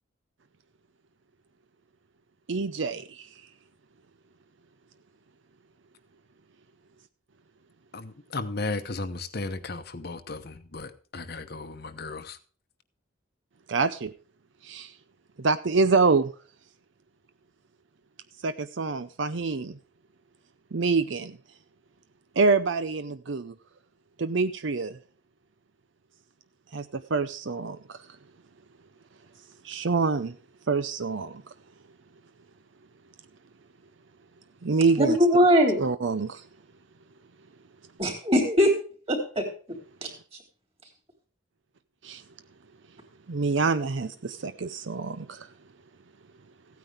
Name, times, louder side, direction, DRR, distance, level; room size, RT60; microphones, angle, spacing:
voice 1, 2.5-3.3 13.7-14.1 14.6-14.9 15.4-16.3 18.4-19.8 20.7-21.4 22.4-23.5 24.2-25.0 26.7-28.0 29.6-30.3 30.7-31.4 34.6-35.2 35.8-36.4 42.0-42.2 43.3-45.5, right 4 dB, 65° right, 0.6 m, -26 dB
voice 2, 7.9-12.4, left 3 dB, 50° left, 0.9 m, -35 dB
voice 3, 35.0-35.8 38.0-38.7 39.1-39.5 40.0-40.1, equal, 30° right, 3.5 m, -21 dB
15.5 x 9.3 x 3.4 m
head